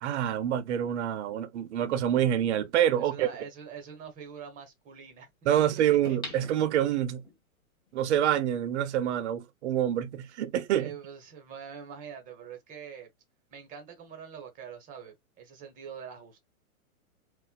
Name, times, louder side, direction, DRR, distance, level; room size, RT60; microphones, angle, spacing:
voice 1, 0.0-3.3 5.4-7.2 7.9-10.9, right 10 dB, 50° right, 0.7 m, -27 dB
voice 2, 3.0-5.3 6.1-6.4 10.8-13.1 13.5-16.4, right 7 dB, 20° right, 0.9 m, -44 dB
sound 1, 6.0-7.4 7.9-8.0, left 2 dB, 10° left, 1.0 m, -43 dB
4.2 x 2.2 x 2.3 m
hypercardioid pair, 145°, 43 cm